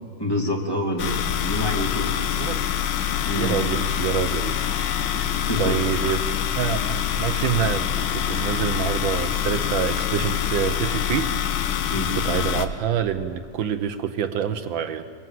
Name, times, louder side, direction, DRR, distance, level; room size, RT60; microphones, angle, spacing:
voice 1, 0.2-1.1 1.4-2.4 3.2-3.6 5.1-5.7 11.9-12.1, left 1 dB, 10° left, -1 dB, 3.1 m, -27 dB
sound 1, 1.0-12.7, left 9 dB, 85° left, 1.8 m, -25 dB
voice 2, 2.4-2.7 3.3-4.6 4.9-5.0 5.6-11.3 12.1-15.0, right 9 dB, 75° right, 9 dB, 1.6 m, -26 dB
25.5 x 21.5 x 7.8 m, 2.2 s
omnidirectional pair, 2.1 m